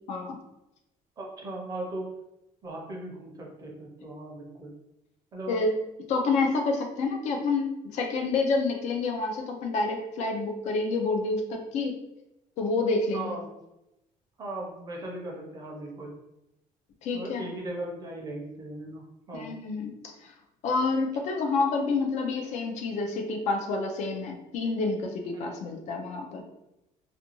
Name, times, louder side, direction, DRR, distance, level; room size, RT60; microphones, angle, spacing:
voice 1, 0.1-0.4 5.5-5.8 6.1-12.0 12.6-13.4 17.0-17.5 19.3-20.3 20.6-26.4, left 3 dB, 55° left, 3 dB, 0.4 m, -28 dB
voice 2, 1.2-2.1 2.6-4.7 5.3-5.6 13.1-13.5 14.4-16.1 17.1-19.5 25.3-25.4, right 2 dB, 25° right, -2 dB, 0.5 m, -38 dB
2.5 x 2.2 x 2.9 m, 0.91 s
cardioid pair, 170°, 15 cm